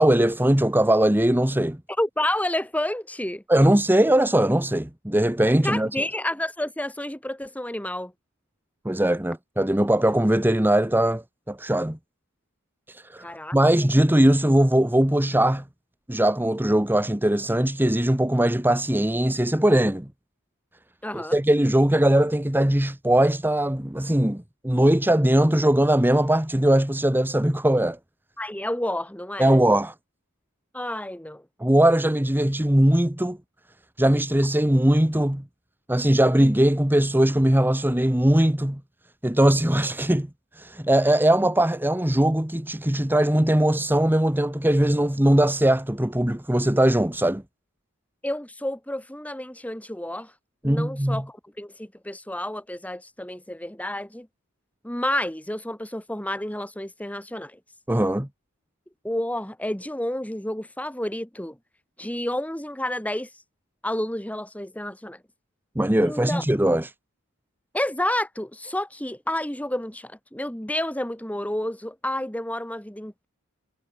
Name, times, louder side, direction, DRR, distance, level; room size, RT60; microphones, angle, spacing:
voice 1, 0.0-1.8 3.5-5.9 8.8-12.0 12.9-13.3 13.5-15.6 16.1-20.1 21.1-28.0 29.4-29.9 31.6-33.4 34.0-35.4 35.9-38.8 39.2-40.3 40.6-47.4 50.6-51.2 57.9-58.3 65.7-66.9, right 1 dB, 10° right, 1.1 m, -20 dB
voice 2, 2.0-3.4 5.6-8.1 13.2-13.6 21.0-21.4 28.4-29.6 30.7-31.4 48.2-50.3 50.6-54.3 54.8-57.6 59.0-61.6 62.0-63.3 63.8-65.2 66.1-66.4 67.7-73.3, left 1 dB, 5° left, 2.5 m, -30 dB
head